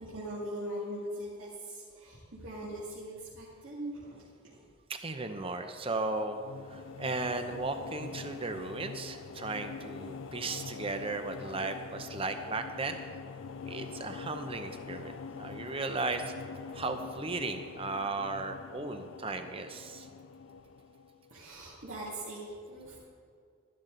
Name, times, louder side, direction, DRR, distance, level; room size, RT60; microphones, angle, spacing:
voice 1, 0.0-4.6 21.3-23.0, right 1 dB, 75° right, -8 dB, 2.2 m, -41 dB
voice 2, 4.9-6.4 6.7-13.0 13.6-16.3 16.7-20.1, right 3 dB, 25° right, 7 dB, 0.8 m, -36 dB
sound 1, 6.1-21.4, left 5 dB, 65° left, 0.4 m, -44 dB
12.5 x 11.5 x 4.0 m, 2.2 s
head